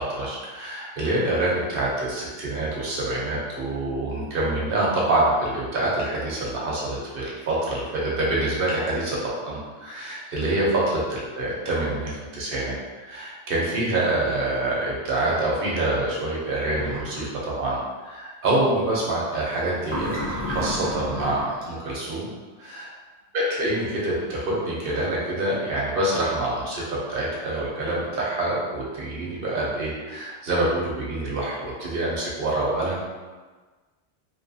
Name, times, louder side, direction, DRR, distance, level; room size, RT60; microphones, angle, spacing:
voice 1, 0.0-20.1 20.4-22.3 22.6-22.9 23.3-33.0, right 1 dB, 55° right, -5 dB, 0.8 m, -26 dB
sound 1, 16.7-17.2 19.8-21.6, equal, 15° left, 0.5 m, -30 dB
2.8 x 2.3 x 2.6 m, 1.4 s
omnidirectional pair, 1.2 m